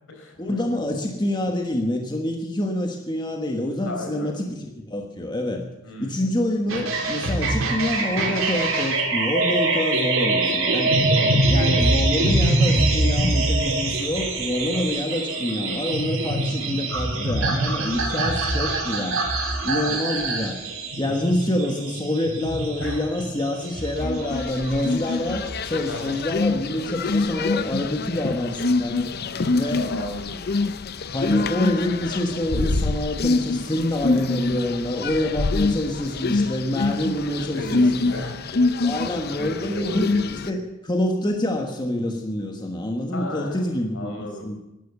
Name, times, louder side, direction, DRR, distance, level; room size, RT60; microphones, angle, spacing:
voice 1, 0.4-5.6 6.0-10.9 11.3-19.2 19.6-20.6 21.0-29.1 29.5-29.8 31.1-38.1 38.8-44.2 44.4-44.6, left 1 dB, 20° left, 2 dB, 1.4 m, -26 dB
voice 2, 3.8-4.3 5.8-6.2 11.1-11.5 19.8-20.2 21.0-21.2 22.8-23.1 25.9-26.1 29.2-30.5 37.2-38.4 39.3-40.5 43.1-44.5, left 1 dB, 70° left, 2 dB, 4.5 m, -35 dB
sound 1, 6.7-26.2, right 2 dB, 80° right, 3.9 m, -24 dB
sound 2, 24.0-40.5, left 3 dB, 50° left, 0.6 m, -25 dB
12.5 x 12.0 x 8.2 m, 0.92 s
head